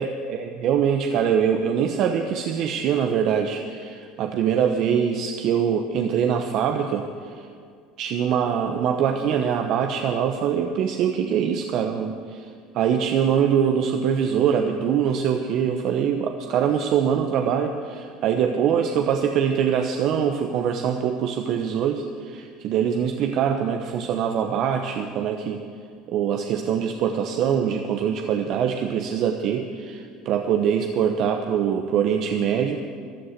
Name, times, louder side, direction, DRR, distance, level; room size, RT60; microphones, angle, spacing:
voice 1, 0.0-7.5 8.0-25.6 26.1-32.8, right 8 dB, 60° right, 5 dB, 0.9 m, -23 dB
13.5 x 11.5 x 8.0 m, 2.2 s
supercardioid pair, 95°, 0 cm